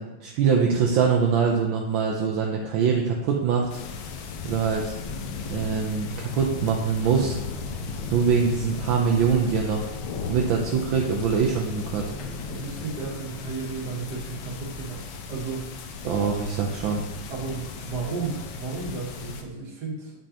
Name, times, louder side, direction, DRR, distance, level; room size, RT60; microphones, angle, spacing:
voice 1, 0.0-3.7 4.4-4.9 5.5-7.4 8.1-9.9 10.3-12.0 16.0-17.0, right 6 dB, 75° right, 0 dB, 1.4 m, -23 dB
sound 1, 3.7-19.4, left 4 dB, 70° left, 1.2 m, -36 dB
voice 2, 12.5-15.0 15.3-15.7 17.3-20.1, right 4 dB, 55° right, -1 dB, 1.8 m, -33 dB
8.8 x 5.3 x 2.8 m, 1.1 s
omnidirectional pair, 2.2 m